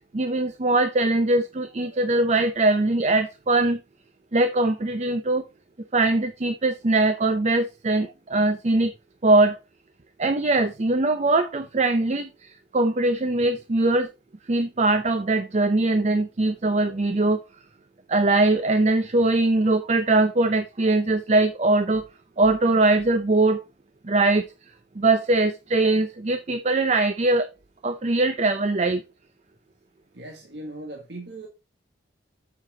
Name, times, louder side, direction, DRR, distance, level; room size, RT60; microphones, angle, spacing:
voice 1, 0.1-3.8 4.3-5.4 5.9-8.9 9.2-9.6 10.2-12.3 12.7-14.1 14.5-17.4 18.1-22.0 22.4-23.6 24.0-24.5 25.0-27.5 27.8-29.0, right 2 dB, 40° right, 0.6 m, -21 dB
voice 2, 30.1-31.5, right 1 dB, 70° right, 1.5 m, -38 dB
7.7 x 5.9 x 3.8 m
head